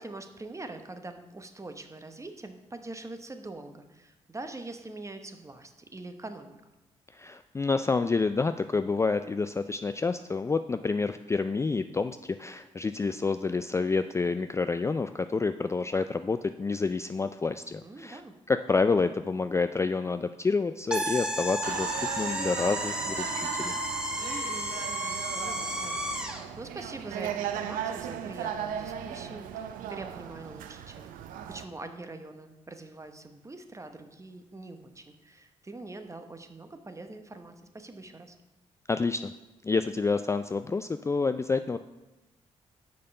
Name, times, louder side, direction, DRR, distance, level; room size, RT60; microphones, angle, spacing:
voice 1, 0.0-6.6 17.8-18.4 24.2-31.1 31.5-38.4, right 2 dB, 20° right, 7 dB, 0.9 m, -44 dB
voice 2, 7.1-18.2 18.5-23.8 38.9-39.3 39.6-41.8, left 4 dB, 20° left, 10 dB, 0.3 m, -28 dB
sound 1, 20.9-26.5, right 1 dB, 5° right, 1.2 m, -32 dB
sound 2, 21.6-31.6, right 9 dB, 80° right, 0.5 m, -37 dB
6.7 x 5.3 x 5.3 m, 1.0 s
supercardioid pair, 50°, 14 cm